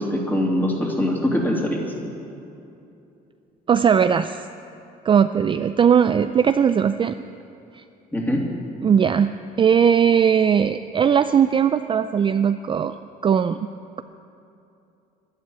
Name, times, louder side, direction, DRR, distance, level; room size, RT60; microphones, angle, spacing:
voice 1, 0.0-1.8 8.1-8.5, left 1 dB, 10° left, -1 dB, 2.9 m, -22 dB
voice 2, 3.7-4.4 5.0-7.2 7.7-7.8 8.8-9.3 9.6-13.0 13.2-13.7, right 7 dB, 30° right, 10 dB, 0.4 m, -18 dB
12.0 x 11.5 x 9.4 m, 2.7 s
cardioid pair, 110°, 17 cm